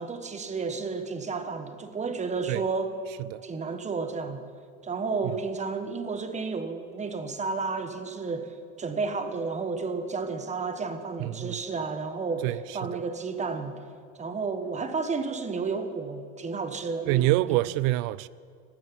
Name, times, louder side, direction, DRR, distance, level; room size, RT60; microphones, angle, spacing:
voice 1, 0.0-2.9 3.4-4.4 4.8-13.8 14.1-17.6, right 4 dB, 20° right, 1.3 m, -32 dB
voice 2, 11.2-11.6 12.4-13.0 17.1-18.3, right 17 dB, 70° right, 0.4 m, -26 dB
15.0 x 7.5 x 10.0 m
supercardioid pair, 115°, 31 cm